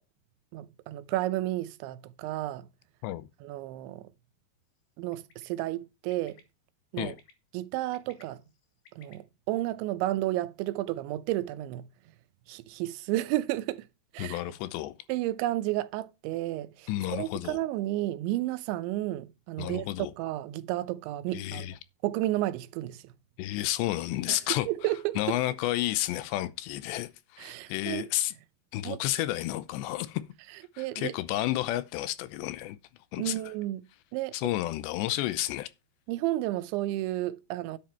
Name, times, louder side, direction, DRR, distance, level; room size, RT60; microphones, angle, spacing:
voice 1, 0.5-2.7 3.4-4.1 5.0-6.4 6.9-7.2 7.5-8.4 9.0-11.9 12.5-13.9 14.1-14.4 15.1-19.9 20.2-21.7 22.0-23.1 24.3-25.4 27.4-28.1 28.8-29.0 30.8-31.1 33.2-33.8 34.1-34.3 36.1-37.8, right 16 dB, 90° right, 3.1 m, -32 dB
Bird, 5.1-5.4 6.1-6.4 7.0-7.3 7.8-9.1, left 7 dB, 65° left, 3.9 m, -57 dB
voice 2, 14.2-15.0 16.9-17.6 19.6-20.1 21.3-21.7 23.4-24.7 25.2-28.3 28.7-30.2 30.8-32.8 33.1-33.4 34.3-35.7, left 15 dB, 80° left, 2.9 m, -31 dB
10.5 x 7.6 x 4.4 m
omnidirectional pair, 5.1 m